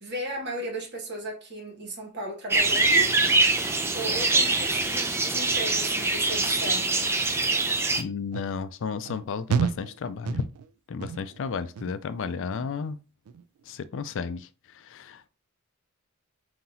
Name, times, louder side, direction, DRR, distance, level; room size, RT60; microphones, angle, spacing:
voice 1, 0.0-3.2 3.9-7.0, right 1 dB, 50° right, 1.6 m, -35 dB
sound 1, 2.5-8.0, right 3 dB, 10° right, 0.4 m, -24 dB
voice 2, 8.0-10.4 10.9-13.0 13.7-15.2, left 5 dB, 60° left, 0.4 m, -33 dB
sound 2, 8.3-8.5 9.0-9.2 9.5-9.9 10.2-10.7 11.0-11.4 11.7-12.1 12.5-12.9 13.3-13.4, right 6 dB, 80° right, 0.3 m, -29 dB
5.5 x 2.9 x 2.7 m
head